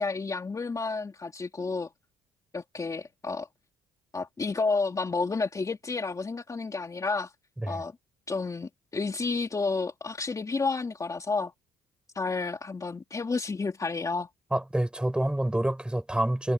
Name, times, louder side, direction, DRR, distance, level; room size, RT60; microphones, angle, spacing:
voice 1, 0.0-1.9 2.5-3.5 4.1-7.3 7.7-7.9 8.3-11.5 12.1-14.3, left 4 dB, 25° left, 2.7 m, -31 dB
voice 2, 14.5-16.5, right 1 dB, 5° right, 5.1 m, -27 dB
cardioid pair, 90°, 13 cm